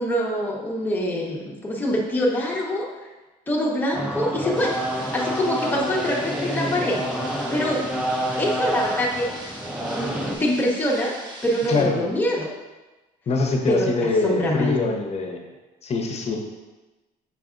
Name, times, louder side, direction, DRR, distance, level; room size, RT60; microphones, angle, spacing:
voice 1, 0.0-2.9 3.5-4.7 5.1-7.0 7.5-7.9 8.4-9.3 9.9-11.1 11.4-12.5 13.7-14.8, equal, 10° left, -3 dB, 0.8 m, -24 dB
sound 1, 3.9-10.4, equal, 5° right, 0.4 m, -28 dB
sound 2, 4.6-11.8, right 1 dB, 25° right, 0.8 m, -41 dB
voice 2, 11.7-12.0 13.3-15.4 15.8-16.4, left 3 dB, 40° left, 2 dB, 0.7 m, -23 dB
5.6 x 3.3 x 2.4 m, 1.1 s
cardioid pair, 110°, 17 cm